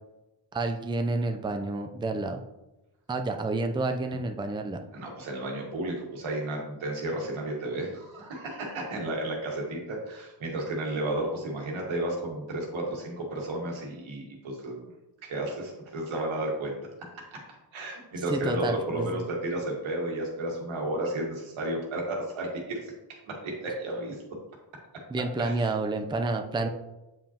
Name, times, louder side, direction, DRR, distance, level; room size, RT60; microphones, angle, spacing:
voice 1, 0.5-2.4 3.1-4.8 18.3-19.2 25.1-26.7, right 2 dB, 10° right, 5 dB, 0.5 m, -29 dB
voice 2, 4.9-14.8 15.2-16.7 17.3-24.2 25.4-25.7 26.6-26.7, right 1 dB, 90° right, -1 dB, 1.7 m, -33 dB
7.4 x 5.1 x 2.9 m, 1.0 s
cardioid pair, 70°, 46 cm